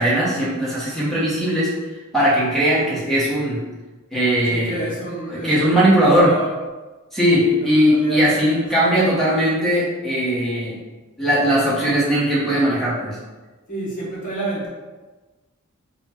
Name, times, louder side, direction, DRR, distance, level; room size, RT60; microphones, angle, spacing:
voice 1, 0.0-1.7 2.1-3.6 4.1-4.7 5.3-6.3 7.1-10.7 11.2-13.1, equal, ahead, -8 dB, 1.1 m, -19 dB
voice 2, 4.4-6.5 7.3-9.0 13.7-14.7, right 1 dB, 35° left, -6 dB, 1.1 m, -30 dB
4.0 x 2.3 x 4.3 m, 1.2 s
head